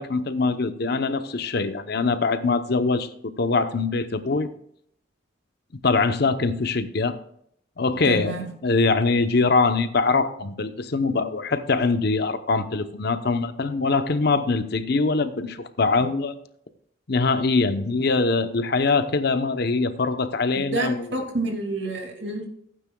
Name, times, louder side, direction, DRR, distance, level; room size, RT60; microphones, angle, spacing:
voice 1, 0.0-4.5 5.8-7.1 7.8-8.3 8.6-16.3 17.1-21.0, left 3 dB, 60° left, 10 dB, 0.8 m, -23 dB
voice 2, 8.0-8.5 20.5-22.5, right 2 dB, 70° right, 3 dB, 2.4 m, -28 dB
16.0 x 9.2 x 2.3 m, 0.69 s
head